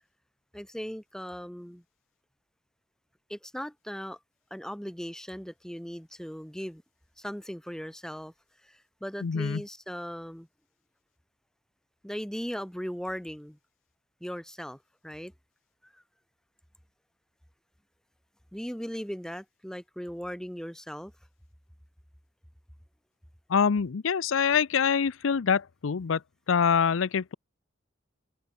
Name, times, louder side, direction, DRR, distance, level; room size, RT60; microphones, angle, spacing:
voice 1, 0.5-1.8 3.3-4.2 4.5-6.8 7.2-8.3 8.6-10.5 12.0-13.6 14.2-15.3 15.8-16.0 18.5-21.1, equal, 5° left, 1.9 m, -38 dB
voice 2, 9.2-9.6 23.5-26.2 26.5-27.3, left 6 dB, 90° left, 0.5 m, -25 dB
head